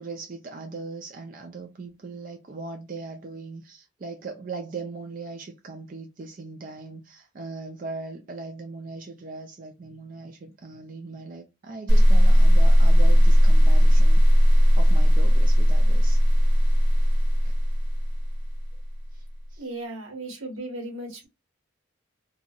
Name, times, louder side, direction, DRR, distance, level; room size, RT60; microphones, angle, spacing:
voice 1, 0.0-14.2 14.8-16.2 19.1-19.2 19.5-19.7, right 3 dB, 40° right, 0.4 m, -39 dB
sound 1, 11.9-19.0, equal, 65° right, 1.4 m, -17 dB
voice 2, 19.6-21.3, right 2 dB, 85° right, 1.3 m, -36 dB
2.8 x 2.6 x 2.3 m
head